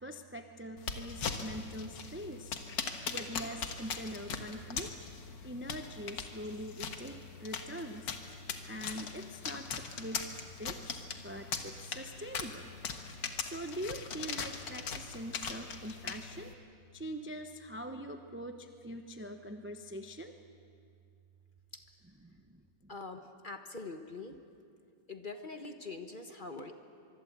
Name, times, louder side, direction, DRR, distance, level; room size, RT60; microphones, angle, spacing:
voice 1, 0.0-2.6 3.1-4.9 5.4-8.1 8.7-10.2 10.6-10.8 11.2-12.6 13.3-16.5 16.9-20.3, equal, 10° right, 6 dB, 0.5 m, -43 dB
sound 1, 0.8-16.5, left 5 dB, 75° left, 2.1 m, -41 dB
voice 2, 22.9-24.4 25.1-26.7, left 3 dB, 35° left, 6 dB, 1.1 m, -44 dB
24.5 x 23.0 x 8.1 m, 2.4 s
omnidirectional pair, 2.0 m